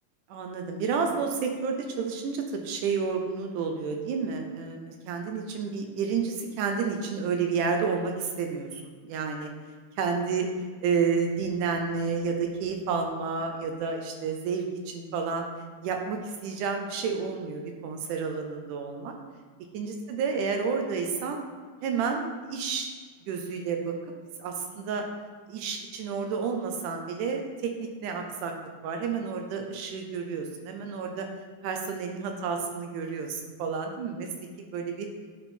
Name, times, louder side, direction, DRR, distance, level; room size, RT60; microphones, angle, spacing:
voice 1, 0.3-9.5 10.0-10.5 10.8-15.5 15.8-19.1 19.7-21.4 21.8-22.9 23.3-24.0 24.4-25.0 25.5-28.5 28.8-31.3 31.6-34.3 34.6-35.1, right 5 dB, 80° right, 4 dB, 2.0 m, -30 dB
8.9 x 3.5 x 4.3 m, 1.5 s
omnidirectional pair, 3.8 m